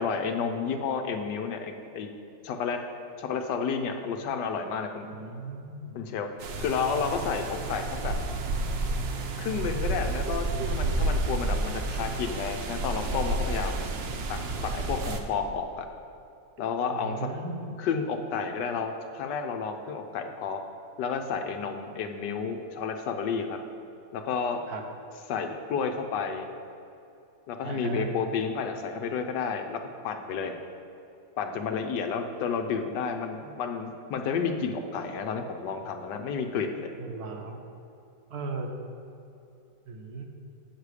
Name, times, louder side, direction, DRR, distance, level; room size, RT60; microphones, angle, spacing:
voice 1, 0.0-2.1 2.4-2.8 3.2-5.1 5.9-6.3 6.6-8.1 9.4-13.8 14.3-15.9 16.6-17.3 17.8-20.6 21.0-23.6 24.1-24.6 25.3-26.5 27.5-30.6 31.4-36.9, left 6 dB, 75° left, 5 dB, 1.3 m, -31 dB
voice 2, 5.0-6.0 14.1-14.3 16.9-17.7 24.7-24.8 27.6-28.1 37.0-37.6 38.3-38.7 39.9-40.3, right 4 dB, 65° right, 2 dB, 1.3 m, -36 dB
sound 1, 6.4-15.2, right 2 dB, 90° right, 0.5 m, -30 dB
8.3 x 6.6 x 4.8 m, 2.7 s
omnidirectional pair, 1.9 m